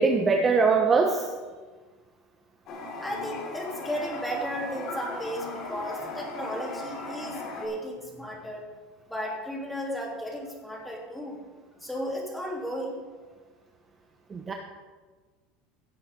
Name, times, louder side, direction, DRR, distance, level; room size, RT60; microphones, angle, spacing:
voice 1, 0.0-1.3 14.3-14.5, right 4 dB, 25° right, 3 dB, 1.0 m, -22 dB
Toilet flush, 2.7-7.7, left 3 dB, 45° left, 3.0 m, -37 dB
voice 2, 3.0-8.6 9.1-11.4 11.8-13.3, equal, 5° left, -3 dB, 3.3 m, -34 dB
16.5 x 8.2 x 3.8 m, 1.4 s
supercardioid pair, 120°, 0 cm